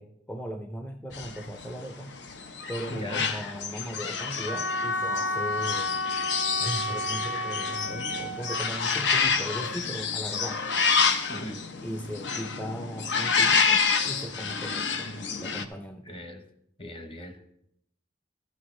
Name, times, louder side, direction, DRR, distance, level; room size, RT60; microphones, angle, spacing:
voice 1, 0.0-2.1 2.7-6.0 6.6-10.7 11.8-16.1, equal, 10° left, 6 dB, 0.4 m, -38 dB
sound 1, 1.1-15.7, left 5 dB, 90° left, 0.8 m, -28 dB
voice 2, 2.9-3.4 11.3-11.6 16.0-16.4 16.8-17.4, equal, 30° left, 7 dB, 0.9 m, -38 dB
Wind instrument woodwind instrument, 4.5-8.7, left 2 dB, 75° left, 1.1 m, -31 dB
12.5 x 8.0 x 3.8 m, 0.77 s
head